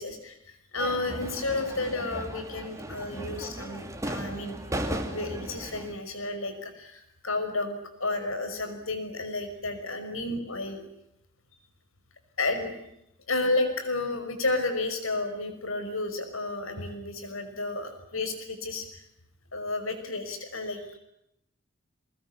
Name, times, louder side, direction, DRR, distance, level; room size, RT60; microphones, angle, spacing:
voice 1, 0.0-10.8 12.4-12.7 13.3-19.0 19.5-21.0, left 2 dB, 75° left, 8 dB, 5.7 m, -32 dB
sound 1, 0.8-5.9, right 1 dB, 15° right, 2.5 m, -36 dB
23.5 x 21.0 x 9.9 m, 0.81 s
head